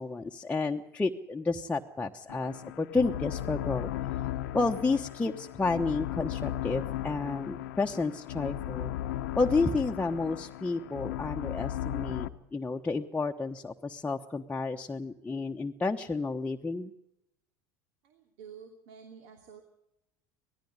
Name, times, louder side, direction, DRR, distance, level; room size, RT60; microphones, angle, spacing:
voice 1, 0.0-3.9 4.5-8.9 9.4-16.9, left 3 dB, 15° left, 1 dB, 1.1 m, -31 dB
sound 1, 2.3-12.3, left 13 dB, 80° left, 0.9 m, -36 dB
voice 2, 18.0-19.6, right 7 dB, 70° right, 4 dB, 2.9 m, -50 dB
19.0 x 14.5 x 9.6 m, 0.84 s
hypercardioid pair, 85°, 10 cm